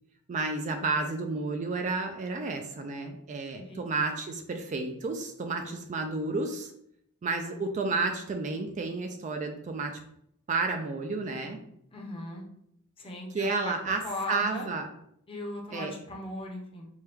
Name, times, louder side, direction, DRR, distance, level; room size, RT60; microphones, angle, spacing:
voice 1, 0.3-6.7 7.2-10.0 10.5-11.6 13.3-14.0 14.3-14.9 15.7-15.9, right 3 dB, 35° right, 5 dB, 0.3 m, -31 dB
voice 2, 11.9-12.5 13.0-14.7 15.3-16.9, left 2 dB, 25° left, 0 dB, 0.7 m, -38 dB
4.5 x 2.2 x 3.3 m, 0.73 s
head